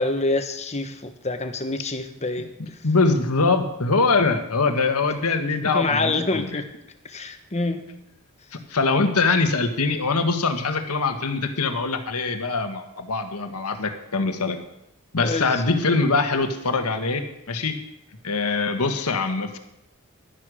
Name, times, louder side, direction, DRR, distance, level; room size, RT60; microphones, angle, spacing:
voice 1, 0.0-2.5 5.7-6.6 7.0-7.9 15.2-15.6, left 2 dB, 30° left, 7 dB, 1.2 m, -26 dB
voice 2, 2.8-6.6 8.7-14.6 15.1-17.7 18.2-19.6, left 3 dB, 85° left, 7 dB, 1.5 m, -23 dB
12.0 x 10.0 x 6.3 m, 0.86 s
head